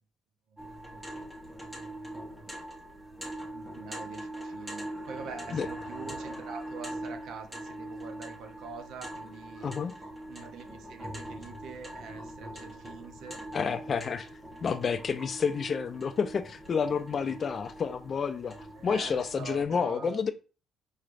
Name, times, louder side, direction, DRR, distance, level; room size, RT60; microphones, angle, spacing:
sound 1, 0.6-19.6, right 1 dB, 15° right, 0.9 m, -42 dB
voice 1, 0.6-1.1 1.5-2.0 2.3-2.5 3.5-9.7 10.3-13.4 18.8-20.2, right 5 dB, 70° right, 0.6 m, -45 dB
voice 2, 9.6-9.9 13.5-14.3 14.6-20.3, left 6 dB, 40° left, 0.4 m, -30 dB
4.7 x 3.2 x 2.5 m
cardioid pair, 120°, 0 cm